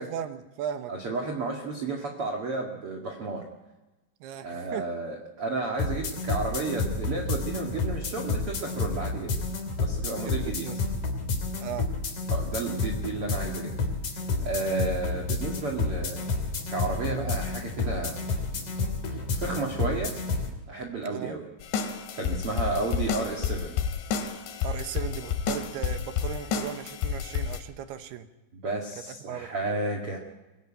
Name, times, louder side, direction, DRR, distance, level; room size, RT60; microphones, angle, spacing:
voice 1, 0.0-0.9 4.2-4.9 10.2-10.8 11.6-11.9 21.1-21.3 22.8-22.9 24.6-28.3 29.1-29.5, right 9 dB, 70° right, 9 dB, 2.8 m, -37 dB
voice 2, 0.9-3.4 4.4-9.3 9.8-10.7 12.3-13.7 14.4-16.3 16.7-18.2 19.1-20.1 20.7-21.4 22.1-23.8 28.5-30.2, right 3 dB, 45° right, 1 dB, 2.0 m, -32 dB
sound 1, 5.8-20.5, left 3 dB, 45° left, 3.8 m, -30 dB
sound 2, 21.6-27.6, left 7 dB, 80° left, 3.9 m, -30 dB
24.0 x 17.0 x 9.0 m, 1.1 s
omnidirectional pair, 5.3 m